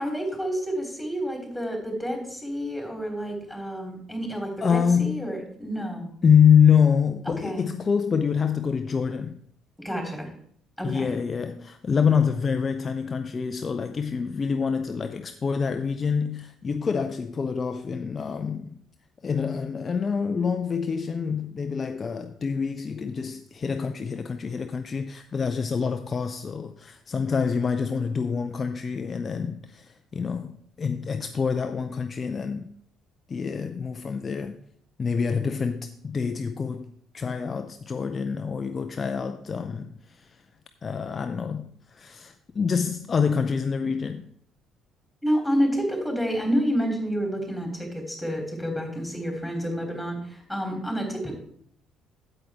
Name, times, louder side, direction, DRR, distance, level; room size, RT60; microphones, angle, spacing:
voice 1, 0.0-6.1 7.4-7.7 9.8-10.3 10.8-11.1 45.2-51.3, equal, ahead, 3.6 m, -29 dB
voice 2, 4.6-5.3 6.2-9.4 10.8-18.8 19.2-32.7 33.3-34.6 35.0-40.4 40.8-44.3, left 6 dB, 35° left, 0.5 m, -26 dB
8.6 x 7.7 x 4.4 m
figure-of-eight pair, 50°, 0 cm